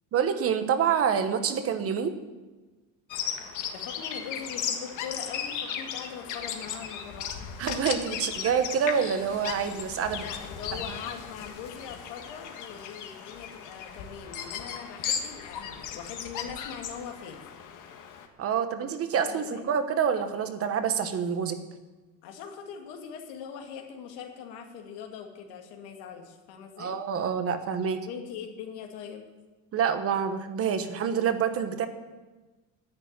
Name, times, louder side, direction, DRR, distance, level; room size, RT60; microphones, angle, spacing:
voice 1, 0.1-2.1 7.6-10.2 18.4-21.6 26.8-28.0 29.7-31.9, right 7 dB, 35° right, 9 dB, 1.2 m, -27 dB
Bird vocalization bird call bird song, 3.1-18.3, left 7 dB, 50° left, 1.5 m, -36 dB
voice 2, 3.6-7.3 10.2-17.4 19.1-19.6 22.2-27.0 28.1-29.3, left 7 dB, 85° left, 3 dB, 2.3 m, -41 dB
10.5 x 9.1 x 9.5 m, 1.2 s
cardioid pair, 165°, 39 cm